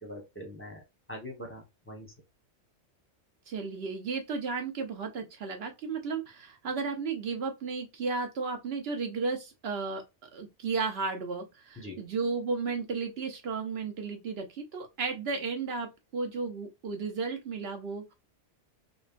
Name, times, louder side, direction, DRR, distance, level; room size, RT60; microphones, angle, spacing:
voice 1, 0.0-0.8 1.1-2.1 11.8-12.0, equal, 10° left, 0.9 m, -42 dB
voice 2, 3.5-18.1, right 4 dB, 60° right, 1.0 m, -34 dB
3.5 x 2.3 x 2.5 m
omnidirectional pair, 1.2 m